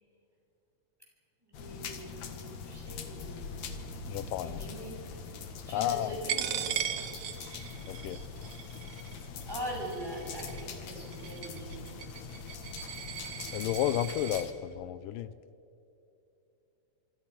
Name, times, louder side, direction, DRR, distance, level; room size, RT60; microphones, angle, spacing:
sound 1, 1.5-14.5, left 5 dB, 60° left, 2.8 m, -43 dB
voice 1, 1.5-2.4 2.6-3.5 4.4-5.0 5.7-6.7 9.5-11.9, equal, 5° right, -2 dB, 6.9 m, -42 dB
voice 2, 4.1-4.6 5.7-6.2 7.8-8.2 13.5-15.3, left 12 dB, 85° left, 15 dB, 2.3 m, -32 dB
Coin (dropping), 6.3-14.4, right 10 dB, 80° right, 2.9 m, -38 dB
26.0 x 25.0 x 5.9 m, 2.8 s
omnidirectional pair, 3.8 m